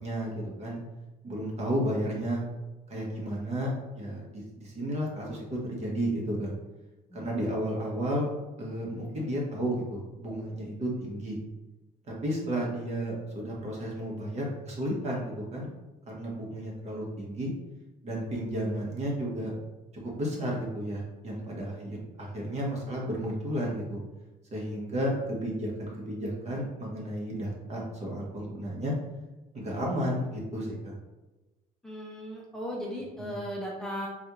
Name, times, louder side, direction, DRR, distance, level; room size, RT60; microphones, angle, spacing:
voice 1, 0.0-0.8 1.2-2.4 2.9-6.5 7.1-8.3 8.6-11.4 12.1-15.7 16.1-17.5 18.0-19.5 20.0-24.0 24.5-28.9 29.5-30.9 33.2-33.3, equal, 40° right, -3 dB, 1.2 m, -32 dB
voice 2, 31.8-34.1, equal, 5° left, -4 dB, 0.6 m, -37 dB
4.1 x 2.4 x 3.0 m, 1.1 s
cardioid pair, 110°, 17 cm